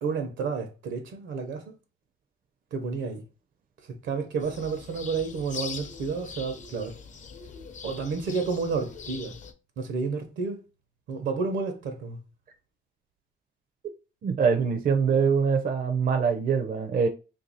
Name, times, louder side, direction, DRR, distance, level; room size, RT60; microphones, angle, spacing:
voice 1, 0.0-1.6 2.7-3.2 3.9-6.9 7.8-9.4 9.8-10.6 11.1-12.2, right 4 dB, 85° right, 0.9 m, -30 dB
sound 1, 4.4-9.5, left 5 dB, 40° left, 0.6 m, -42 dB
voice 2, 14.2-17.1, right 6 dB, 50° right, 0.5 m, -24 dB
2.7 x 2.6 x 4.0 m
cardioid pair, 95°, 19 cm